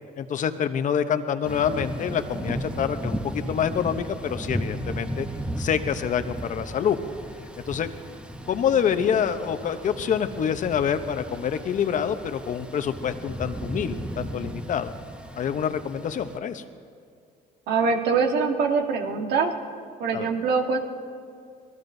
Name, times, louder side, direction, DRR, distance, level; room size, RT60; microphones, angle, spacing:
voice 1, 0.2-5.3 5.6-7.0 7.7-7.9 8.5-14.9 15.4-16.6 20.1-20.3, left 8 dB, 50° left, 10 dB, 0.8 m, -26 dB
Thunder / Rain, 1.4-16.4, right 1 dB, 5° right, 0.8 m, -35 dB
voice 2, 17.7-19.5 20.0-20.8, right 5 dB, 75° right, 3 dB, 1.5 m, -23 dB
25.5 x 19.0 x 2.7 m, 2.3 s
cardioid pair, 110°, 17 cm